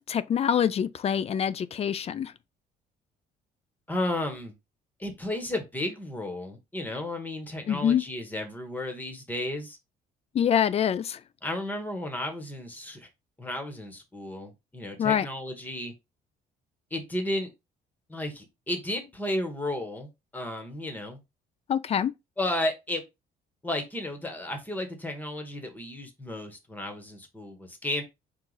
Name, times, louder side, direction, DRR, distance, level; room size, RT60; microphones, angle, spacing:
voice 1, 0.0-2.3 7.7-8.0 10.3-11.2 15.0-15.3 21.7-22.1, left 8 dB, 35° left, 0.4 m, -25 dB
voice 2, 3.9-4.5 5.0-9.8 11.4-13.1 13.4-15.9 16.9-17.5 18.1-21.2 22.4-23.0 23.6-28.0, left 1 dB, 10° left, 1.3 m, -33 dB
4.7 x 2.5 x 3.9 m
cardioid pair, 110°, 17 cm